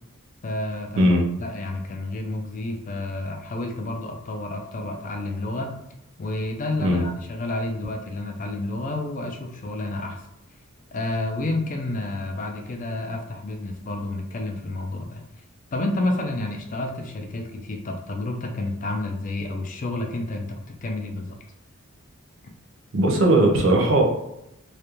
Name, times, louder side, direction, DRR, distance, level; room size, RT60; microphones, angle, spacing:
voice 1, 0.4-5.7 6.2-10.2 10.9-15.2 15.7-21.4, left 2 dB, 35° left, 4 dB, 0.3 m, -30 dB
voice 2, 22.9-24.0, right 1 dB, 60° right, 1 dB, 0.5 m, -18 dB
2.3 x 2.2 x 2.9 m, 0.82 s
head